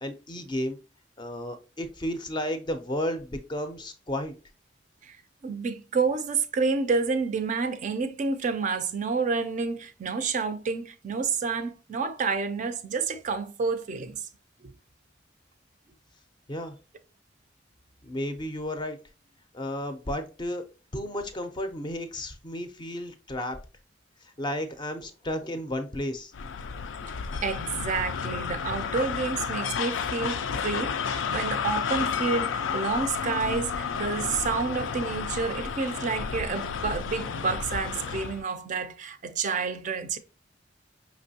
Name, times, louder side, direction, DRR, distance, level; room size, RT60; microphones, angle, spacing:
voice 1, 0.0-0.8 1.2-4.3 16.5-16.8 18.0-19.0 19.5-20.6 20.9-23.6 24.2-26.3, left 1 dB, 25° left, 0.5 m, -33 dB
voice 2, 5.4-14.3 14.6-14.7 27.4-40.2, right 4 dB, 40° right, 0.4 m, -29 dB
sound 1, 26.3-38.4, left 6 dB, 85° left, 0.4 m, -31 dB
5.2 x 3.0 x 2.7 m
head